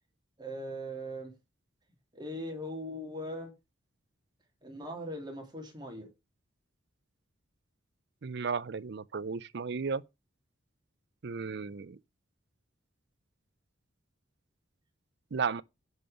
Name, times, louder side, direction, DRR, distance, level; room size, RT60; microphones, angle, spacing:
voice 1, 0.4-1.3 2.1-3.5 4.6-6.1, equal, 20° right, 3.0 m, -40 dB
voice 2, 8.2-10.0 11.2-12.0 15.3-15.6, right 5 dB, 60° right, 0.5 m, -34 dB
10.5 x 5.5 x 5.6 m
head